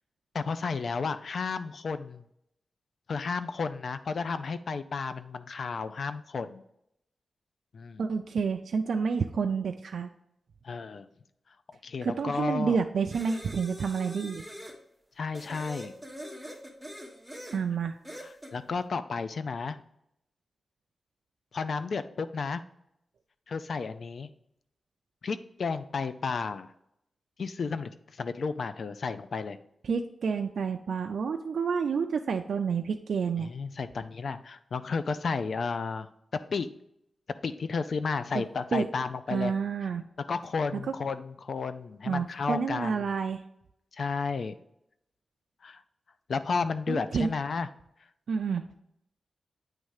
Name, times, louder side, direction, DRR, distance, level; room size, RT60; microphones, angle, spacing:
voice 1, 0.3-2.2 3.1-6.6 7.7-8.1 10.6-11.1 11.8-12.8 15.2-15.9 18.2-19.8 21.5-22.6 23.5-24.3 25.2-26.7 27.4-29.6 33.4-36.1 36.5-36.7 37.4-39.5 40.3-43.1 43.9-44.6 45.6-45.8 46.3-47.7, left 4 dB, 65° left, 12 dB, 0.4 m, -32 dB
voice 2, 8.0-10.1 12.0-14.4 17.5-18.0 29.8-33.5 38.3-38.4 38.7-38.9 39.3-40.0 40.7-40.8 42.1-43.4 46.9-47.3 48.3-48.8, right 5 dB, 80° right, 5 dB, 0.3 m, -29 dB
sound 1, 13.1-14.8 15.3-17.6 18.0-18.5, equal, ahead, 1.0 m, -43 dB
9.0 x 3.2 x 4.8 m, 0.78 s
wide cardioid pair, 110°, 0 cm